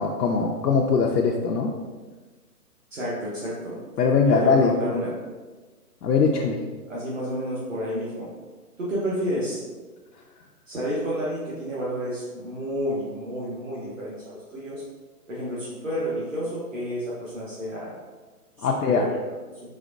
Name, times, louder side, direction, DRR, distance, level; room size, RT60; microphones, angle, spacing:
voice 1, 0.0-1.7 4.0-4.7 6.0-6.6 18.6-19.1, left 5 dB, 90° left, 0 dB, 0.6 m, -21 dB
voice 2, 2.9-3.8 4.2-5.1 6.9-8.3 8.8-9.6 10.7-14.8 15.3-17.9 18.6-19.2, equal, 55° right, -7 dB, 1.0 m, -30 dB
4.2 x 3.3 x 2.5 m, 1.3 s
hypercardioid pair, 180°, 46 cm